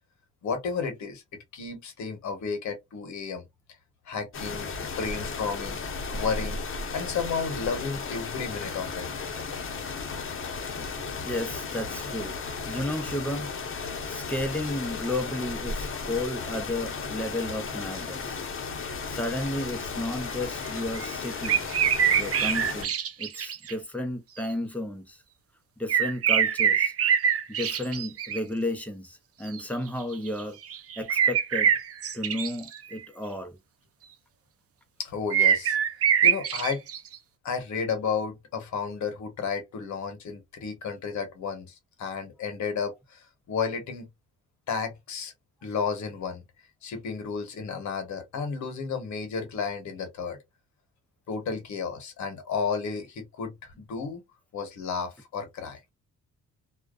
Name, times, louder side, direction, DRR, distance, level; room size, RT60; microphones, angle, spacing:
voice 1, 0.4-1.2 1.5-3.5 4.1-5.8 6.1-9.1 35.0-35.8 36.2-36.8 37.4-44.1 44.7-45.3 45.6-46.4 46.8-50.4 51.3-54.2 54.5-55.8, left 5 dB, 70° left, 1.1 m, -32 dB
sound 1, 4.3-22.9, left 4 dB, 45° left, 0.8 m, -35 dB
voice 2, 11.2-12.4 12.7-13.5 13.8-18.5 19.1-21.6 22.2-22.9 23.2-25.2 25.8-26.9 27.5-30.6 31.0-31.7 32.1-33.6, left 1 dB, 5° left, 0.6 m, -33 dB
sound 2, 20.9-21.1 21.4-23.7 24.4-24.5 25.9-28.4 29.5-29.6 30.0-30.4 30.7-33.0 35.3-37.1, right 8 dB, 50° right, 0.6 m, -24 dB
2.3 x 2.3 x 2.3 m
cardioid pair, 90°, 30 cm